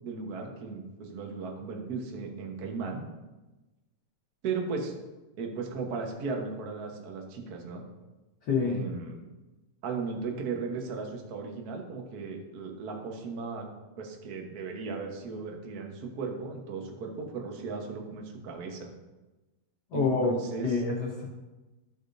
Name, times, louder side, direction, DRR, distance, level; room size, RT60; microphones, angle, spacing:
voice 1, 0.0-3.1 4.4-4.9 5.4-7.8 8.6-9.2 9.8-13.7 14.0-18.9 19.9-20.7, right 4 dB, 75° right, 2 dB, 0.8 m, -36 dB
voice 2, 8.5-8.8 19.9-20.3 20.6-21.3, left 4 dB, 65° left, -3 dB, 1.0 m, -27 dB
14.5 x 5.0 x 2.6 m, 1.1 s
omnidirectional pair, 3.3 m